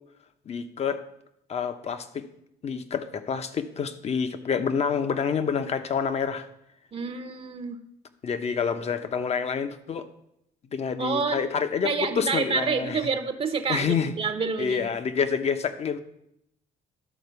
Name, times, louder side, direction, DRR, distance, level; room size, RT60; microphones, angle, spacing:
voice 1, 0.5-1.0 1.5-2.3 2.6-6.5 8.2-10.1 10.7-13.1 13.7-14.1 14.6-16.0, left 6 dB, 40° left, 10 dB, 0.8 m, -28 dB
voice 2, 6.9-7.8 11.0-11.4 11.8-14.9, right 5 dB, 35° right, 8 dB, 0.8 m, -28 dB
11.5 x 4.3 x 6.9 m, 0.79 s
cardioid pair, 110°, 17 cm